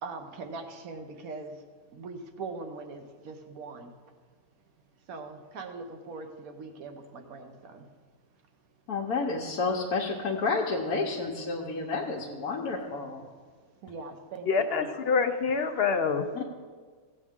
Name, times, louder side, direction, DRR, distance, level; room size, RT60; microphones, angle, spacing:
voice 1, 0.0-1.6 1.9-3.9 5.1-7.9 13.8-14.9, right 3 dB, 70° right, 6 dB, 1.4 m, -41 dB
voice 2, 8.9-13.2 16.3-16.4, left 4 dB, 85° left, -2 dB, 1.5 m, -30 dB
voice 3, 14.5-16.4, left 5 dB, 60° left, 8 dB, 0.6 m, -26 dB
16.0 x 8.3 x 3.6 m, 1.5 s
omnidirectional pair, 1.6 m